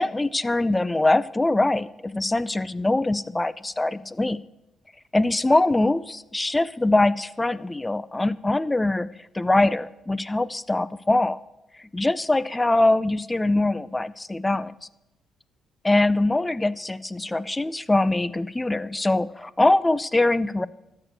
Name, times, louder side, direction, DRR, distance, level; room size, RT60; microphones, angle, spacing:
voice 1, 0.0-4.4 5.1-9.1 9.3-11.4 11.8-14.7 15.8-20.7, left 2 dB, 15° left, 18 dB, 0.4 m, -23 dB
13.0 x 6.4 x 7.6 m, 0.94 s
cardioid pair, 90°, 0 cm